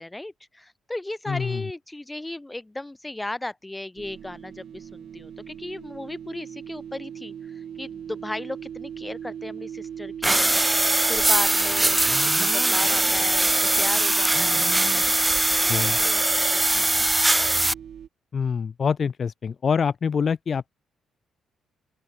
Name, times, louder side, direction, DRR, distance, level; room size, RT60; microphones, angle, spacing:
voice 1, 0.0-10.7 11.0-13.5 13.8-17.1, left 1 dB, 10° left, 5.3 m, -36 dB
voice 2, 1.3-1.6 15.7-16.0 18.3-20.7, left 6 dB, 45° left, 0.9 m, -25 dB
sound 1, 4.0-18.1, right 8 dB, 60° right, 2.9 m, -38 dB
sound 2, 10.2-17.7, right 1 dB, 10° right, 0.7 m, -21 dB
open air
cardioid pair, 90°, 0 cm